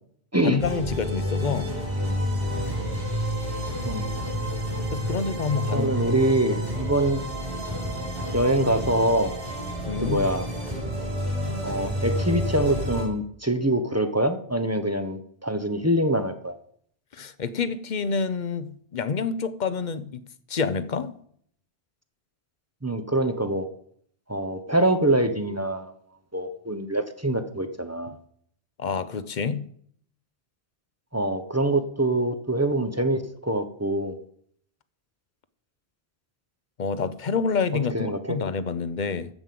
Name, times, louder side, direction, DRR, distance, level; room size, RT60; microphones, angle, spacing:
voice 1, 0.4-1.8 4.9-5.9 9.8-10.3 17.1-20.1 20.5-21.2 28.8-29.7 36.8-39.3, left 5 dB, 50° left, 0.9 m, -28 dB
sound 1, 0.6-13.0, equal, 60° right, 6.0 m, -29 dB
voice 2, 5.7-7.2 8.3-9.3 10.0-10.4 11.6-16.6 22.8-23.7 24.3-25.9 26.3-28.1 31.1-34.2 37.7-38.4, right 1 dB, 15° right, 0.9 m, -24 dB
14.5 x 5.5 x 7.7 m
omnidirectional pair, 1.1 m